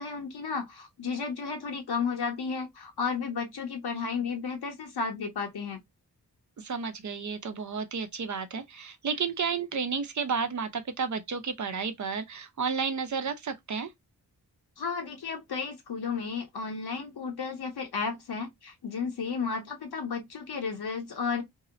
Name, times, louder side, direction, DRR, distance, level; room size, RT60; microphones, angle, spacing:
voice 1, 0.0-5.8 14.8-21.4, left 5 dB, 70° left, 0.7 m, -33 dB
voice 2, 6.6-13.9, right 5 dB, 45° right, 0.6 m, -32 dB
2.7 x 2.0 x 2.4 m
cardioid pair, 50°, 40 cm